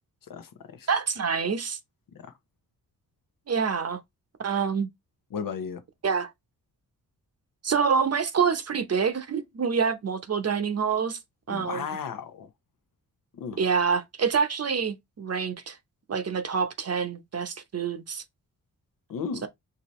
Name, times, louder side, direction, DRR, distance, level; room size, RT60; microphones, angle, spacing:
voice 1, 0.3-0.9 2.2-2.3 5.3-5.8 11.5-12.5 13.3-13.6 19.1-19.5, left 6 dB, 65° left, 0.8 m, -35 dB
voice 2, 0.9-1.8 3.5-4.0 4.4-4.9 6.0-6.3 7.6-11.2 11.5-11.9 13.6-15.8 16.1-18.2, right 6 dB, 45° right, 0.8 m, -26 dB
4.8 x 2.7 x 3.0 m
cardioid pair, 70°, 36 cm